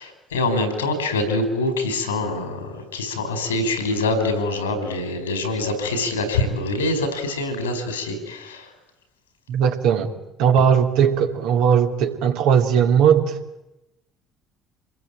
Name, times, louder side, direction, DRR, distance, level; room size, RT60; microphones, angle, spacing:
voice 1, 0.0-8.7, left 2 dB, 85° left, 8 dB, 5.4 m, -25 dB
voice 2, 9.5-10.1 10.4-13.4, right 8 dB, 65° right, 3 dB, 3.0 m, -18 dB
27.5 x 21.0 x 8.9 m, 0.96 s
figure-of-eight pair, 55°, 0 cm